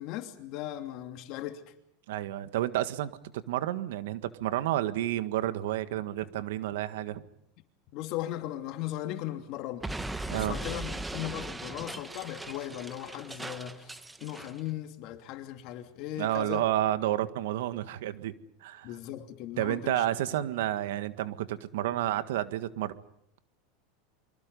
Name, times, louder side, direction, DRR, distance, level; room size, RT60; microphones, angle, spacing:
voice 1, 0.0-1.6 7.9-9.9 10.3-16.6 18.8-20.1, left 13 dB, 50° left, 2.8 m, -38 dB
voice 2, 2.1-3.1 3.5-7.2 10.3-10.6 16.2-18.3 18.6-18.9 19.6-23.0, right 13 dB, 80° right, 1.7 m, -30 dB
Explosion, 9.8-14.6, right 2 dB, 10° right, 1.1 m, -39 dB
29.0 x 25.0 x 5.5 m
supercardioid pair, 140°, 0 cm